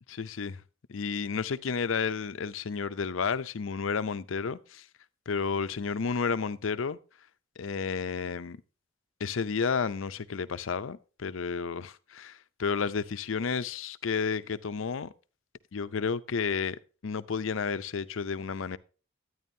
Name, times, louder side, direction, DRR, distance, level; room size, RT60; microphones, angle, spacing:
voice 1, 0.1-0.6 0.9-4.9 5.3-7.0 7.6-8.6 9.2-15.1 15.7-18.8, left 5 dB, 85° left, 0.6 m, -31 dB
11.0 x 9.5 x 2.7 m
head